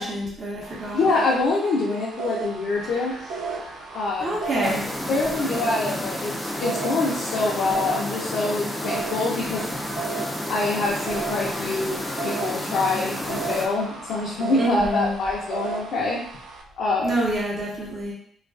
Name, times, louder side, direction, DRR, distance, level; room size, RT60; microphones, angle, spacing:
voice 1, 0.0-1.1 4.2-4.8 14.5-15.1 17.0-18.1, right 1 dB, 35° right, -5 dB, 0.7 m, -27 dB
sound 1, 0.6-16.6, right 5 dB, 90° right, 0.3 m, -35 dB
voice 2, 0.9-3.1 3.9-4.3 4.6-4.7 5.1-9.6 10.5-16.2 16.8-17.2, left 3 dB, 75° left, -5 dB, 0.5 m, -25 dB
sound 2, 2.7-14.6, equal, 70° right, 0.8 m, -43 dB
sound 3, 4.6-13.7, left 1 dB, 10° left, 0.4 m, -31 dB
2.3 x 2.2 x 2.4 m, 0.65 s
cardioid pair, 90°, 0 cm